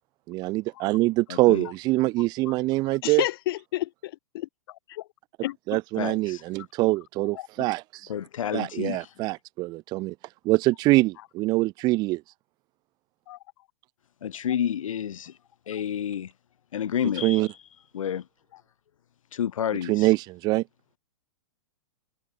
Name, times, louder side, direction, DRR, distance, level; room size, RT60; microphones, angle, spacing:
voice 1, 0.3-3.2 5.7-8.1 8.5-10.1 10.4-12.2 17.2-17.5 19.9-20.6, right 20 dB, 25° right, 1.2 m, -24 dB
voice 2, 1.3-1.7 6.0-6.4 8.1-9.1 14.2-15.4 15.7-16.3 16.7-17.5 17.9-18.3 19.3-20.1, left 9 dB, 75° left, 6.4 m, -30 dB
voice 3, 3.0-4.5 4.9-5.0 5.4-5.8 13.3-13.4, left 16 dB, 45° left, 1.7 m, -30 dB
hypercardioid pair, 160°, 17 cm